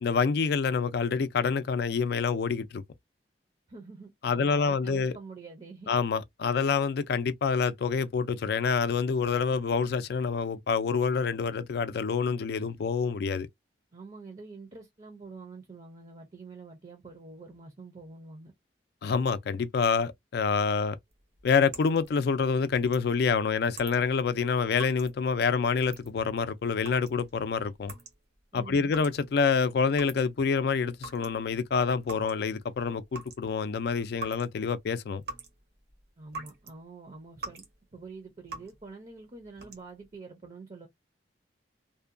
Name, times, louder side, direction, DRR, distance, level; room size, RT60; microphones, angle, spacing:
voice 1, 0.0-2.8 4.2-5.1 5.9-13.5 19.0-21.0 21.4-27.9 28.5-35.2, left 5 dB, 60° left, 0.4 m, -27 dB
voice 2, 3.7-5.9 13.9-18.5 28.5-28.9 36.2-37.6 37.9-40.9, right 3 dB, 35° right, 0.6 m, -46 dB
sound 1, 21.1-30.6 30.8-36.7 37.1-37.8 38.1-38.9 39.4-40.1, right 3 dB, 60° right, 0.9 m, -46 dB
2.6 x 2.2 x 2.5 m
head